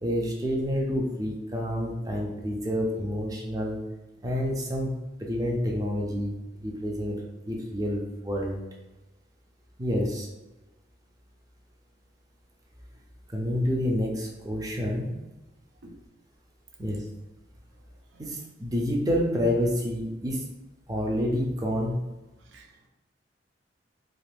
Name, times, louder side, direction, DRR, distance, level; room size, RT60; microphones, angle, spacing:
voice 1, 0.0-3.8 4.2-6.4 6.6-7.2 7.5-8.6 9.8-10.3 13.3-15.1 16.8-17.0 18.2-20.5 20.9-22.0, equal, 20° right, -1 dB, 0.4 m, -28 dB
voice 2, 17.8-18.3 22.3-22.9, right 1 dB, 80° right, 3 dB, 0.5 m, -53 dB
2.5 x 2.4 x 3.3 m, 1.1 s
head